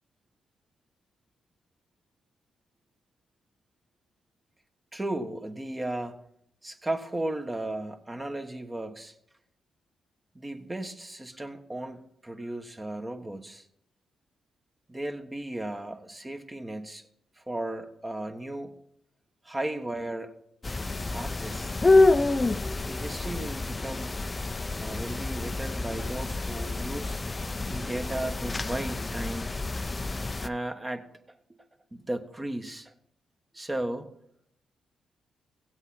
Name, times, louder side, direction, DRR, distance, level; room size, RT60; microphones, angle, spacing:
voice 1, 4.9-6.2 6.6-9.1 10.3-13.7 14.9-17.1 17.4-18.7 19.4-20.3 21.1-21.8 22.9-24.2 24.8-27.2 27.7-29.5 30.4-31.4 31.9-32.9 33.5-34.1, right 1 dB, 25° right, 6 dB, 1.3 m, -35 dB
sound 1, 20.6-30.5, left 2 dB, 30° left, 0.5 m, -27 dB
15.5 x 8.0 x 4.3 m, 0.73 s
supercardioid pair, 45°, 0 cm